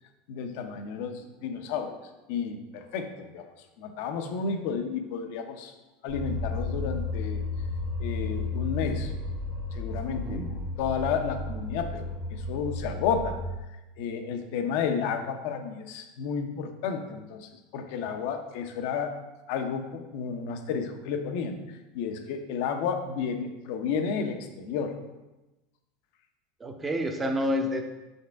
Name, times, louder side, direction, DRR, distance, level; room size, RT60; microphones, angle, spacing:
voice 1, 0.3-1.9 2.3-3.5 3.8-5.7 6.0-7.4 8.0-9.1 9.7-10.5 10.8-13.4 14.0-19.1 19.5-21.6 21.9-24.9, left 6 dB, 65° left, 6 dB, 0.7 m, -32 dB
sound 1, 6.1-13.4, left 3 dB, 65° right, 1.1 m, -33 dB
voice 2, 10.2-10.5 26.6-27.8, equal, 20° right, 4 dB, 0.9 m, -29 dB
5.8 x 5.4 x 3.5 m, 1.0 s
hypercardioid pair, 95°, 0 cm